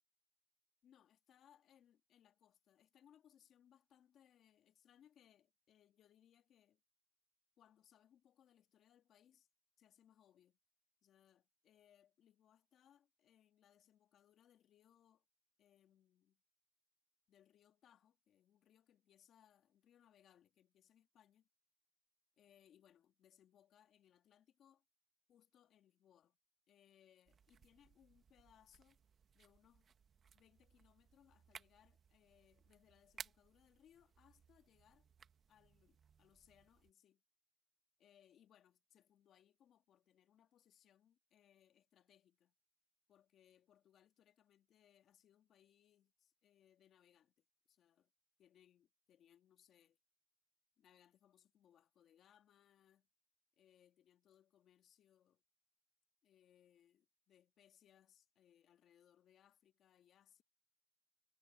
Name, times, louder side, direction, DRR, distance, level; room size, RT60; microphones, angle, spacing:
voice 1, 0.8-6.8 7.6-9.5 9.8-10.6 11.0-15.2 15.6-16.4 17.3-21.5 22.4-24.8 25.3-26.4 26.7-29.0 29.3-29.9 30.3-35.1 35.5-37.2 38.0-42.5 43.1-48.1 48.4-50.0 50.8-53.1 53.6-55.4 56.2-60.4, left 10 dB, 60° left, 1.9 m, -71 dB
sound 1, 27.2-36.9, right 7 dB, 45° right, 1.2 m, -61 dB
supercardioid pair, 85°, 0 cm